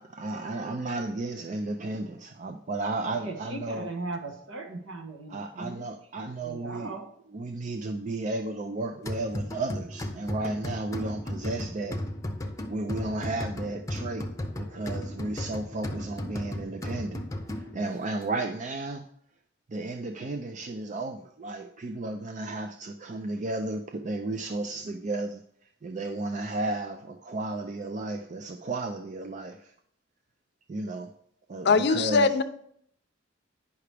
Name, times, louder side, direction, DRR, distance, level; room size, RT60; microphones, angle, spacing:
voice 1, 0.0-3.9 5.3-7.0 7.3-12.0 12.7-14.3 14.5-17.2 17.5-19.0 19.7-25.4 25.8-29.7 30.7-31.1 31.5-32.3, right 2 dB, 40° right, 6 dB, 0.4 m, -33 dB
voice 2, 3.1-5.8 6.4-7.1, right 2 dB, 70° right, 3 dB, 1.3 m, -38 dB
sound 1, 9.1-17.9, left 1 dB, 15° left, 0.7 m, -35 dB
voice 3, 31.6-32.4, left 4 dB, 55° left, 10 dB, 0.5 m, -21 dB
9.5 x 5.8 x 3.4 m, 0.68 s
head